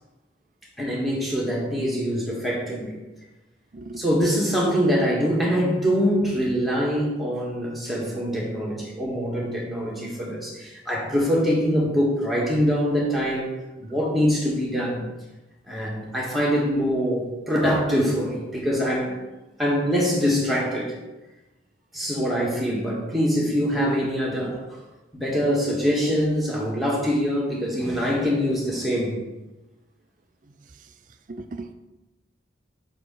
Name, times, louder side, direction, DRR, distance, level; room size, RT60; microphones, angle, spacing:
voice 1, 0.8-3.0 4.0-13.5 13.8-15.1 15.7-19.2 19.6-20.9 21.9-24.8 25.1-29.2, equal, ahead, -5 dB, 1.6 m, -24 dB
voice 2, 31.3-31.7, right 2 dB, 45° right, 8 dB, 0.5 m, -37 dB
5.4 x 4.8 x 6.1 m, 1.1 s
head